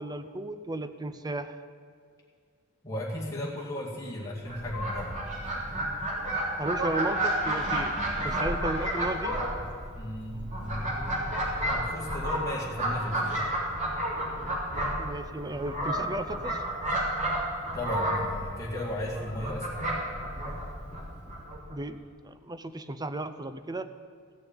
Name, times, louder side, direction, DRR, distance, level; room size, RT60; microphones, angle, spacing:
voice 1, 0.0-1.6 6.6-7.9 8.2-9.4 15.0-16.6 21.7-22.0 22.2-23.9, right 1 dB, 20° right, 10 dB, 0.6 m, -34 dB
voice 2, 2.8-5.2 9.9-10.9 11.7-13.5 17.7-19.7, left 1 dB, 15° left, -5 dB, 2.2 m, -35 dB
Fowl, 4.4-21.7, right 1 dB, 35° right, 3.2 m, -31 dB
15.0 x 6.7 x 8.8 m, 2.1 s
head